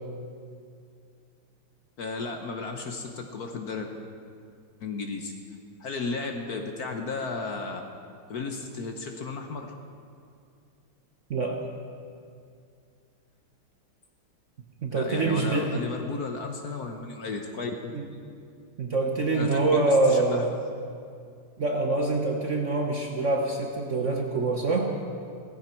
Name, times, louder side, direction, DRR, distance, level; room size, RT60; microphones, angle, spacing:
voice 1, 2.0-3.9 4.8-5.3 5.8-7.8 8.3-9.7 14.9-17.9 19.3-20.4, left 4 dB, 55° left, 4 dB, 1.2 m, -34 dB
voice 2, 11.3-11.6 14.8-15.9 17.9-18.1 18.8-20.5 21.6-24.9, right 2 dB, 45° right, 1 dB, 1.1 m, -25 dB
17.0 x 15.0 x 4.5 m, 2.3 s
omnidirectional pair, 2.3 m